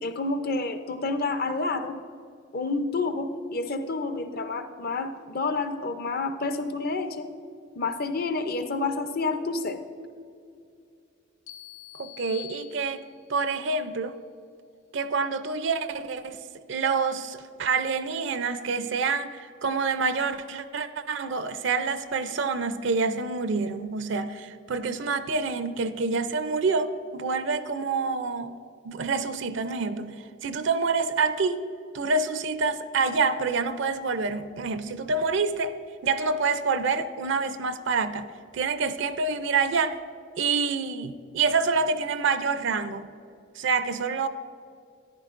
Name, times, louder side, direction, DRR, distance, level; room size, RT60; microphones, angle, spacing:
voice 1, 0.0-2.0 2.5-7.3 7.8-9.8, left 3 dB, 45° left, 9 dB, 0.6 m, -29 dB
sound 1, 11.5-13.3, left 15 dB, 75° left, 0.8 m, -45 dB
voice 2, 12.0-13.0 13.3-14.1 14.9-16.4 16.7-28.5 28.8-31.6 31.9-35.8 36.0-40.0 40.4-43.1 43.6-44.3, right 4 dB, 60° right, 11 dB, 0.4 m, -27 dB
13.5 x 10.5 x 2.5 m, 2.5 s
head